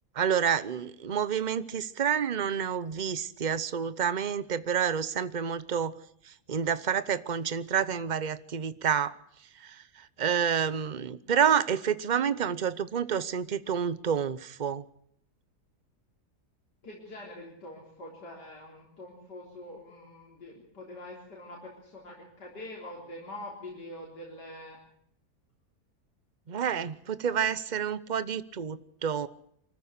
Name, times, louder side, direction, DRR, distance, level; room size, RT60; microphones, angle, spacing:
voice 1, 0.1-6.0 6.2-9.1 9.6-14.8 26.5-29.3, right 7 dB, 35° right, 0.8 m, -29 dB
voice 2, 16.8-24.8, left 1 dB, 85° left, 4.4 m, -44 dB
24.5 x 14.5 x 8.4 m
omnidirectional pair, 1.7 m